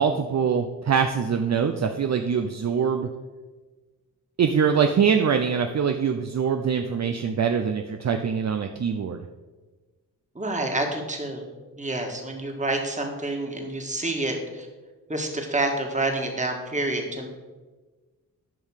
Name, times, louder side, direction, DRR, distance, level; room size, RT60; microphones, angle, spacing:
voice 1, 0.0-3.1 4.4-9.3, right 6 dB, 50° right, 6 dB, 0.6 m, -23 dB
voice 2, 10.4-11.5 11.8-14.7 15.1-17.3, right 2 dB, 20° right, 2 dB, 1.8 m, -28 dB
11.0 x 5.5 x 6.5 m, 1.3 s
wide cardioid pair, 105°, 36 cm